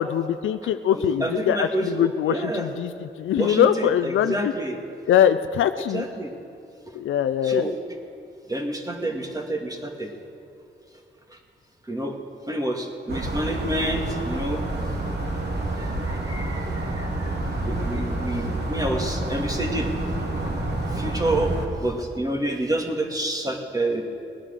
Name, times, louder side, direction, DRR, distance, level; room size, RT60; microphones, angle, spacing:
voice 1, 0.0-2.9 3.2-4.5 5.1-6.0 6.9-7.7, left 10 dB, 90° left, 10 dB, 0.4 m, -22 dB
voice 2, 0.9-2.7 3.3-4.8 5.9-6.3 6.9-7.0 7.4-7.7 8.5-10.1 11.3-11.4 11.8-12.2 12.5-14.6 15.8-19.9 20.9-24.0, right 1 dB, 20° right, 2 dB, 2.2 m, -28 dB
sound 1, 13.1-21.7, right 2 dB, 60° right, 2.4 m, -28 dB
19.0 x 9.9 x 6.5 m, 2.5 s
cardioid pair, 65°, 20 cm